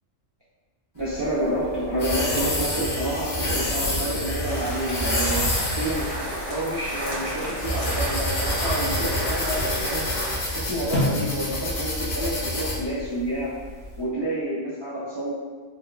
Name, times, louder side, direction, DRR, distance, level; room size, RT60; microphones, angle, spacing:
voice 1, 0.9-10.1 10.5-13.5 14.0-15.3, right 1 dB, 40° right, -10 dB, 0.3 m, -29 dB
sound 1, 1.0-14.0, left 1 dB, 55° left, 1.0 m, -28 dB
sound 2, 4.4-10.4, right 1 dB, 15° left, 0.9 m, -32 dB
sound 3, 6.0-12.6, left 1 dB, 90° left, 1.3 m, -34 dB
4.8 x 2.1 x 2.3 m, 1.4 s
omnidirectional pair, 1.3 m